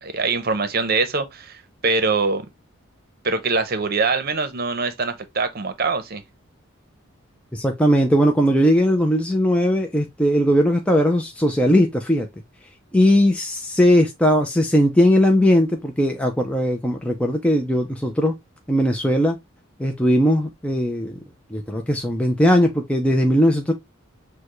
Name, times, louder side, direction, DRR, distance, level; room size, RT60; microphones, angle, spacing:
voice 1, 0.0-2.4 3.2-6.2, right 4 dB, 50° right, 0.7 m, -23 dB
voice 2, 7.5-12.3 12.9-18.3 18.7-19.4 19.8-21.2 21.5-23.7, equal, 5° left, 0.5 m, -19 dB
6.7 x 2.2 x 3.0 m
head